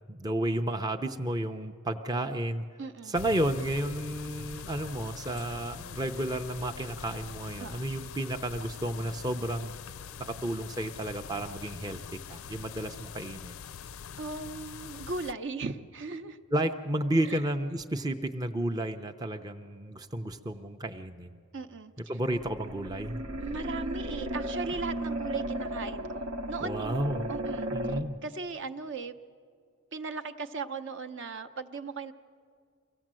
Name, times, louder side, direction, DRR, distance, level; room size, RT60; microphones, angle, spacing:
voice 1, 0.1-2.6 3.0-9.7 10.2-13.6 16.5-21.4 22.1-23.2 26.6-27.3 27.7-28.2, right 1 dB, 15° right, 6 dB, 0.5 m, -32 dB
voice 2, 2.8-3.1 7.6-7.9 14.2-16.4 17.2-17.4 21.5-21.9 23.4-27.0 27.3-27.7 28.2-29.2 29.9-32.1, right 4 dB, 55° right, 9 dB, 0.8 m, -37 dB
sound 1, 3.1-15.3, left 7 dB, 65° left, 0.4 m, -43 dB
sound 2, 22.3-28.0, right 1 dB, 80° right, 1.0 m, -35 dB
24.5 x 16.5 x 7.5 m, 2.2 s
head